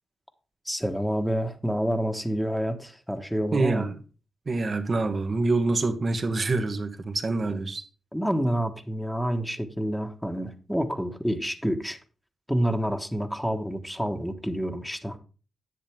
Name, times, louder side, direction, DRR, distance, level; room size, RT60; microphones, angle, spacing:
voice 1, 0.6-3.9 7.5-7.6 8.1-12.0 12.5-15.2, equal, ahead, 1.4 m, -28 dB
voice 2, 3.5-3.9 4.4-7.8, right 3 dB, 50° right, 1.6 m, -26 dB
10.5 x 7.3 x 3.6 m
supercardioid pair, 50°, 0 cm